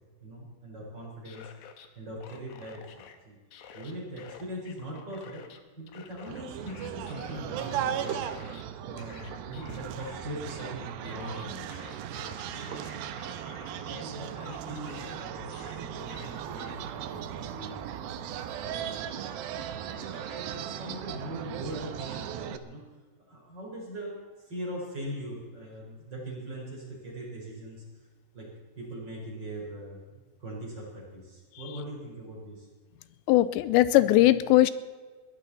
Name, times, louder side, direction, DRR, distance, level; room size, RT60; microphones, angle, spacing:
voice 1, 0.2-1.5 1.9-3.4 3.7-5.4 5.8-8.1 8.8-11.7 12.4-12.8 13.5-19.3 19.6-22.8 23.3-27.8 28.3-28.5 28.8-32.7, right 1 dB, 25° right, -3 dB, 5.1 m, -41 dB
sound 1, 1.0-1.9 2.2-3.2 3.5-5.6 5.9-8.6 9.0-14.0 14.4-16.7, left 7 dB, 70° left, 1.8 m, -49 dB
sound 2, 6.3-22.6, right 9 dB, 75° right, 2.4 m, -37 dB
voice 2, 33.3-34.7, left 15 dB, 90° left, 15 dB, 2.9 m, -20 dB
22.0 x 15.5 x 4.2 m, 1.4 s
omnidirectional pair, 5.0 m